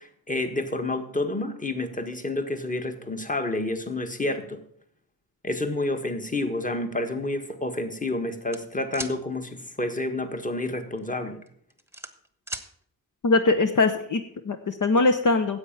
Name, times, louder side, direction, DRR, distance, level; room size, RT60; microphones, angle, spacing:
voice 1, 0.0-4.6 5.4-11.4, left 2 dB, 20° left, 6 dB, 1.6 m, -29 dB
sound 1, 8.5-9.2 10.8-11.0 11.5-12.7, right 2 dB, 5° right, 1.2 m, -36 dB
voice 2, 13.2-15.6, left 3 dB, 55° left, 7 dB, 1.0 m, -22 dB
9.9 x 8.0 x 7.3 m, 0.63 s
cardioid pair, 85°, 36 cm